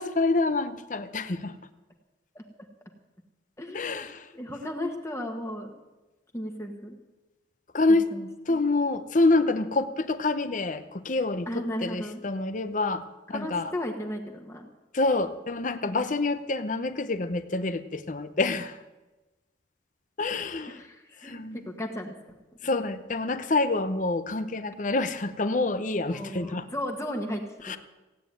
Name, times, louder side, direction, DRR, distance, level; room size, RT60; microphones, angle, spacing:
voice 1, 0.0-1.5 3.7-4.3 7.7-8.1 8.5-13.0 13.3-13.7 14.9-18.8 20.2-20.8 21.2-21.7 22.6-26.7 27.6-27.8, left 3 dB, 45° left, 10 dB, 0.8 m, -27 dB
voice 2, 3.6-4.1 4.3-5.7 6.3-7.0 8.1-8.6 11.5-12.2 13.3-14.7 15.8-16.1 20.2-20.3 20.7-22.1 26.1-27.7, left 1 dB, 15° left, 2 dB, 1.5 m, -35 dB
16.5 x 9.2 x 9.2 m, 1.1 s
head